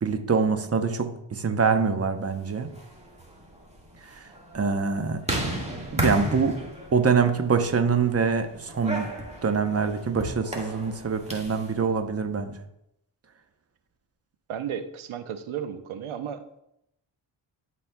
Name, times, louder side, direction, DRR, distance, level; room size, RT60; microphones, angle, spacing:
voice 1, 0.0-2.7 4.1-4.2 4.5-5.2 5.9-6.6 6.9-9.1 9.4-12.6, right 5 dB, 30° right, 7 dB, 0.8 m, -24 dB
sound 1, 2.6-11.7, right 1 dB, 15° right, 1.6 m, -34 dB
voice 2, 14.5-16.4, right 8 dB, 80° right, 9 dB, 0.8 m, -34 dB
12.0 x 4.2 x 2.3 m, 0.80 s
cardioid pair, 55°, 49 cm